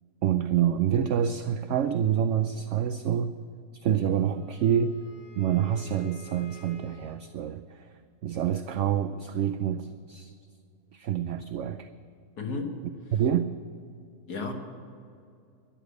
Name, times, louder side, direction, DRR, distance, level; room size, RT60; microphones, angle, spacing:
voice 1, 0.2-3.4 3.7-5.0 5.4-7.9 8.2-10.3 10.9-11.9 13.1-13.5, right 9 dB, 65° right, 10 dB, 0.8 m, -27 dB
Wind instrument woodwind instrument, 4.1-7.4, right 1 dB, 45° left, 2.1 m, -52 dB
voice 2, 12.4-12.8 14.3-14.5, left 3 dB, 80° left, 3 dB, 2.2 m, -32 dB
13.0 x 11.5 x 8.3 m, 2.4 s
omnidirectional pair, 1.6 m